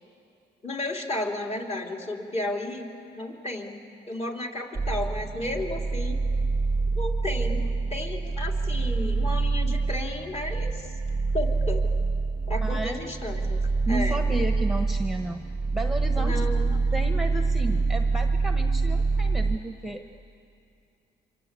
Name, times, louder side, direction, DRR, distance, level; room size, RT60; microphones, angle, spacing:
voice 1, 0.6-6.2 6.9-10.9 11.3-11.9 12.5-14.2 16.2-16.8, left 1 dB, 30° left, 1 dB, 3.5 m, -33 dB
sound 1, 4.7-19.6, right 3 dB, 15° right, 0.9 m, -26 dB
voice 2, 12.6-13.1 13.9-15.4 15.7-16.5 16.9-20.0, right 1 dB, ahead, 5 dB, 1.3 m, -32 dB
27.5 x 25.0 x 8.4 m, 2.5 s
cardioid pair, 90°, 20 cm